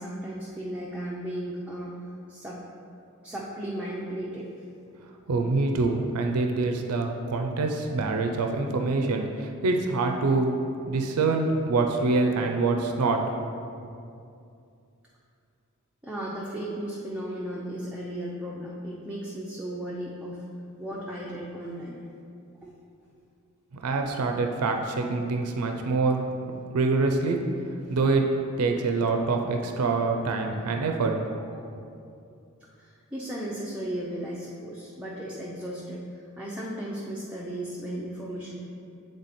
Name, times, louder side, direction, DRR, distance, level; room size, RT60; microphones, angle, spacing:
voice 1, 0.0-2.6 3.2-4.6 16.0-20.4 20.8-22.0 22.6-22.7 31.4-31.8 32.8-38.6, right 1 dB, 5° right, -5 dB, 0.5 m, -35 dB
voice 2, 5.3-10.5 10.9-13.5 23.8-26.2 26.7-27.4 27.9-28.3 28.6-31.2, right 3 dB, 85° right, 3 dB, 0.5 m, -25 dB
8.0 x 3.3 x 4.1 m, 2.5 s
head